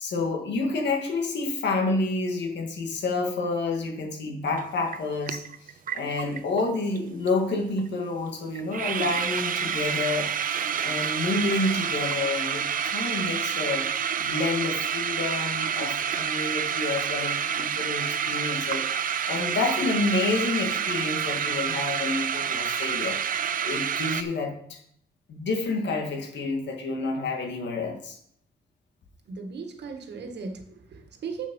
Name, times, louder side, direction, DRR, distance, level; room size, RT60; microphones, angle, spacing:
voice 1, 0.0-5.4 5.9-10.3 10.8-13.9 14.2-23.2 23.6-24.8 25.3-28.2, left 3 dB, 90° left, 2 dB, 1.8 m, -29 dB
sound 1, 4.5-4.6 4.9-6.7 7.0-7.1 7.2-7.5 7.8-7.9 8.3-8.4 8.5-24.2, right 8 dB, 50° right, 0.6 m, -28 dB
voice 2, 29.3-31.5, right 5 dB, 75° right, 4 dB, 1.5 m, -37 dB
7.5 x 7.1 x 5.4 m, 0.66 s
wide cardioid pair, 145°, 18 cm